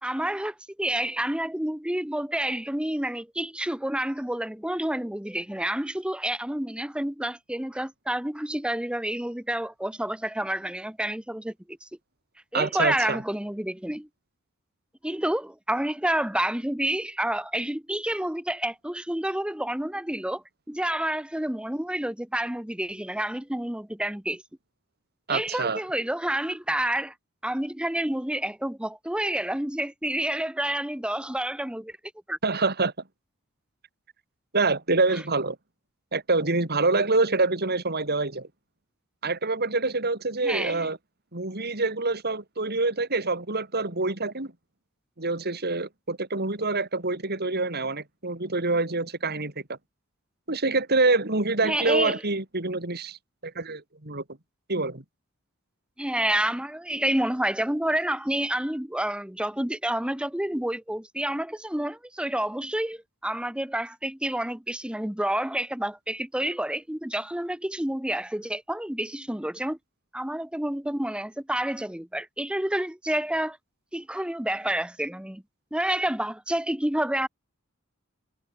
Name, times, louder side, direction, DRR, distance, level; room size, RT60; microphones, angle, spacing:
voice 1, 0.0-11.9 12.5-14.1 15.0-24.4 25.3-27.1 27.4-31.9 32.3-32.4 40.4-40.9 51.6-52.2 56.0-69.8 70.1-73.6 73.9-75.4 75.7-77.3, right 1 dB, 5° right, 0.9 m, -29 dB
voice 2, 12.5-13.2 25.3-25.8 32.4-32.9 34.5-35.6 36.1-38.5 39.2-41.0 41.3-44.5 45.2-49.5 50.5-53.2 53.4-54.2 54.7-55.0, right 3 dB, 50° right, 4.4 m, -26 dB
head